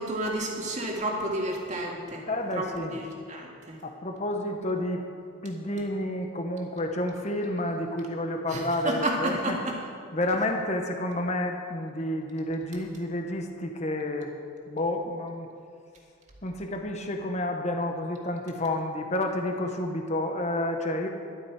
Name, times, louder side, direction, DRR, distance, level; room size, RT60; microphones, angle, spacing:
voice 1, 0.0-2.2 2.5-2.7 2.9-3.0 3.3-3.8 8.5-9.7, right 1 dB, 35° right, -1 dB, 2.0 m, -30 dB
voice 2, 2.2-3.0 3.8-5.0 5.4-9.6 10.1-14.3 14.7-15.5 16.4-21.1, left 1 dB, 35° left, 4 dB, 1.0 m, -30 dB
12.0 x 12.0 x 4.8 m, 2.2 s
head